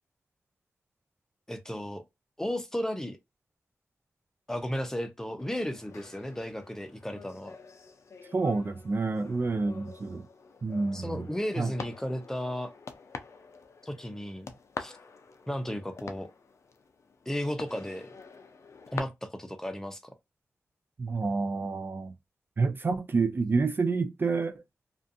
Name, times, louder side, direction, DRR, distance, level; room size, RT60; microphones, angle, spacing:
voice 1, 1.5-2.0 2.4-3.2 4.5-7.6 10.9-12.7 13.8-14.5 14.8-15.0 15.5-16.3 17.3-18.1 18.9-20.1, equal, 10° left, 0.6 m, -34 dB
sound 1, 5.4-19.0, left 5 dB, 65° left, 0.5 m, -46 dB
voice 2, 8.3-10.3 10.6-11.3 11.6-11.7 21.0-22.1 22.6-24.6, right 4 dB, 45° right, 0.3 m, -28 dB
2.5 x 2.4 x 2.5 m
cardioid pair, 60°, 5 cm